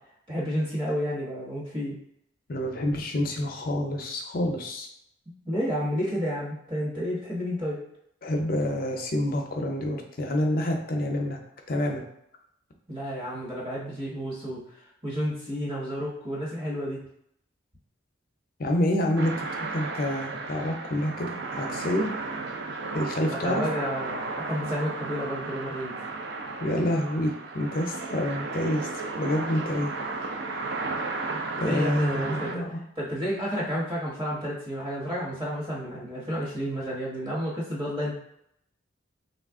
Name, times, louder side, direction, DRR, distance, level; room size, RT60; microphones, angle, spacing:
voice 1, 0.3-2.0 5.4-7.8 12.9-17.0 23.4-25.9 31.6-32.6 33.0-38.1, equal, 25° right, -6 dB, 1.0 m, -31 dB
voice 2, 2.5-4.9 8.2-11.4 11.7-12.0 18.6-19.5 19.7-22.1 22.9-23.6 26.6-28.9 29.2-29.9 31.6-32.7, left 1 dB, 45° left, 2 dB, 0.5 m, -27 dB
sound 1, 19.2-32.6, right 3 dB, 55° right, 0.3 m, -34 dB
3.1 x 2.4 x 3.5 m, 0.75 s
head